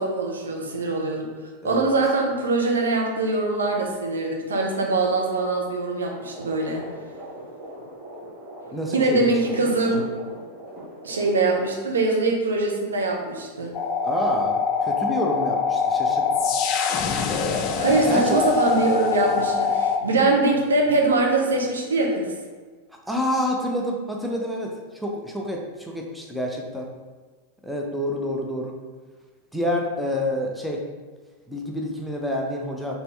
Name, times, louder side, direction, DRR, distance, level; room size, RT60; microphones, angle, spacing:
voice 1, 0.0-1.3 1.6-6.8 8.9-10.1 11.0-13.7 17.8-22.3, right 2 dB, 70° right, 1 dB, 0.7 m, -23 dB
voice 2, 1.6-1.9 8.7-9.3 9.6-10.1 14.0-16.4 18.1-18.4 23.0-26.9 27.6-28.8 29.5-30.8 31.5-33.0, left 1 dB, ahead, -1 dB, 0.6 m, -28 dB
sound 1, 6.2-11.3, equal, 30° right, 1.5 m, -40 dB
sound 2, 13.7-20.0, left 5 dB, 35° left, 0.4 m, -24 dB
4.3 x 3.3 x 3.2 m, 1.5 s
figure-of-eight pair, 90°, 0 cm